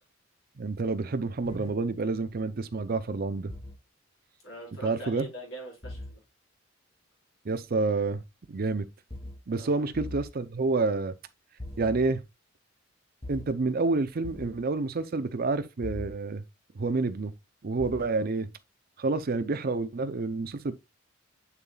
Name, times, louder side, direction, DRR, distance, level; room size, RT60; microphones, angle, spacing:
voice 1, 0.6-3.5 4.8-5.3 7.4-8.2 8.5-8.9 9.5-11.1 11.8-12.2 13.3-16.4 16.8-17.3 17.6-18.5 19.0-20.7, right 3 dB, 45° right, 0.5 m, -28 dB
sound 1, 1.4-1.7 3.5-3.7 5.8-6.1 9.1-9.4 9.9-10.2 11.6-12.1 13.2-13.4 14.2-14.6 15.8-16.1 17.8-18.1, left 1 dB, 30° left, 2.7 m, -39 dB
voice 2, 4.4-6.2 9.5-9.9, right 1 dB, 75° left, 4.7 m, -42 dB
7.0 x 6.9 x 2.3 m
head